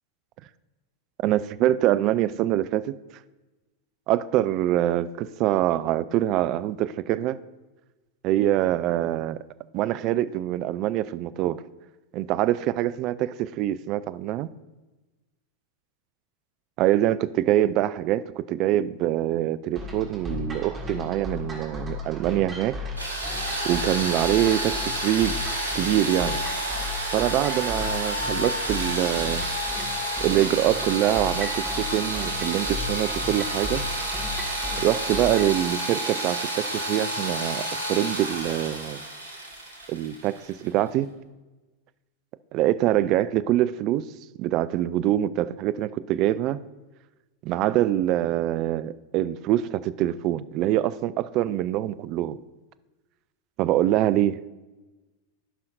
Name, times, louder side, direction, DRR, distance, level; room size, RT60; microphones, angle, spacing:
voice 1, 1.2-3.0 4.1-7.4 8.2-9.4 9.7-11.6 12.1-14.5 16.8-22.8 23.6-25.4 25.7-26.4 27.1-29.5 30.2-33.8 34.8-39.0 39.9-41.1 42.5-44.1 44.4-46.6 47.4-52.4 53.6-54.4, right 13 dB, 40° right, 15 dB, 0.3 m, -24 dB
sound 1, 19.8-35.6, left 2 dB, 20° right, 1.7 m, -36 dB
sound 2, 23.0-40.7, right 1 dB, 90° left, 2.6 m, -30 dB
14.0 x 5.7 x 2.6 m, 1.1 s
figure-of-eight pair, 90°, 0 cm